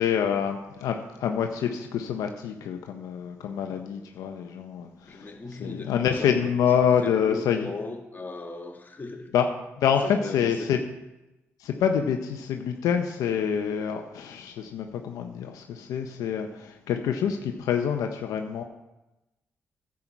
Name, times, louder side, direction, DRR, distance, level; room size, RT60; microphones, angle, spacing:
voice 1, 0.0-7.7 9.3-9.5 9.8-10.8 11.6-18.6, left 8 dB, 85° left, 5 dB, 0.7 m, -26 dB
voice 2, 5.1-6.5 7.0-9.3 10.0-10.7, left 3 dB, 30° left, 1 dB, 2.0 m, -37 dB
10.5 x 7.5 x 4.5 m, 0.99 s
supercardioid pair, 55°, 6 cm